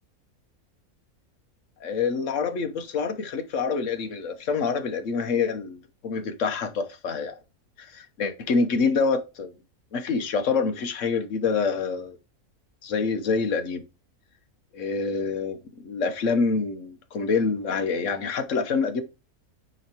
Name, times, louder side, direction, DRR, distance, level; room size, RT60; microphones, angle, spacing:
voice 1, 1.8-7.3 7.8-9.5 9.9-12.2 12.8-13.8 14.7-19.0, left 5 dB, 60° left, 1.2 m, -26 dB
9.0 x 3.2 x 4.4 m
omnidirectional pair, 1.6 m